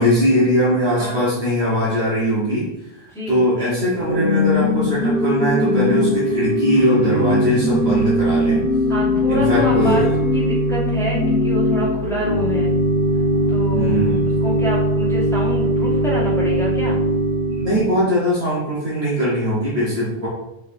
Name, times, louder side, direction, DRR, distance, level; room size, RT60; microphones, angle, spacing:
voice 1, 0.0-8.7 9.3-10.2 13.7-14.3 17.5-20.3, equal, 65° right, -8 dB, 1.5 m, -20 dB
Organ / Church bell, 3.9-18.0, left 1 dB, 30° left, 1.4 m, -20 dB
voice 2, 8.9-10.1 10.3-12.7 13.5-13.9 14.4-17.0, right 1 dB, 5° left, -7 dB, 1.3 m, -27 dB
4.7 x 3.8 x 2.6 m, 0.91 s
omnidirectional pair, 1.1 m